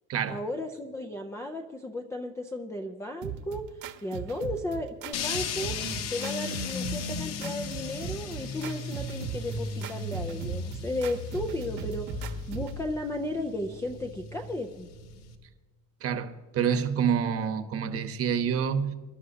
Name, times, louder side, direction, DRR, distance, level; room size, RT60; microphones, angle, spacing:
voice 1, 0.3-3.6 4.0-5.8 6.1-14.9, left 1 dB, 10° left, 0.4 m, -34 dB
sound 1, 3.2-12.8, right 9 dB, 65° right, 1.3 m, -39 dB
sound 2, 5.1-15.3, left 4 dB, 75° left, 1.7 m, -36 dB
voice 2, 16.0-18.9, right 7 dB, 35° right, 1.0 m, -28 dB
24.0 x 12.0 x 2.8 m
cardioid pair, 170°, 39 cm